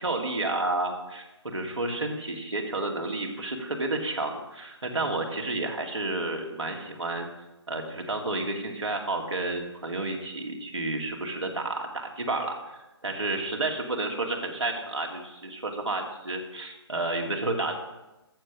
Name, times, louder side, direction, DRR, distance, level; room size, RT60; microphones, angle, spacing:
voice 1, 0.0-7.3 7.7-17.7, right 2 dB, 85° right, 0 dB, 2.4 m, -31 dB
13.5 x 6.7 x 6.1 m, 0.98 s
figure-of-eight pair, 140°, 15 cm